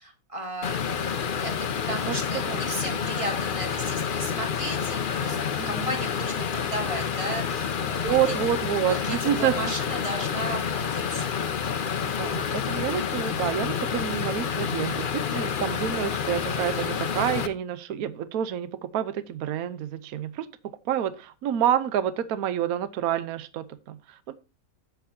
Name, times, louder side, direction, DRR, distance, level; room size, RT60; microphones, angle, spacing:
voice 1, 0.0-1.5 1.9-5.4 5.6-8.3 8.8-11.3 12.6-13.0, right 1 dB, 20° right, 2 dB, 2.1 m, -35 dB
sound 1, 0.6-17.5, left 7 dB, 60° left, 0.5 m, -29 dB
voice 2, 5.6-5.9 8.0-9.6 12.0-20.5 20.8-24.4, right 10 dB, 65° right, 15 dB, 1.1 m, -28 dB
10.0 x 8.1 x 2.7 m, 0.30 s
omnidirectional pair, 1.9 m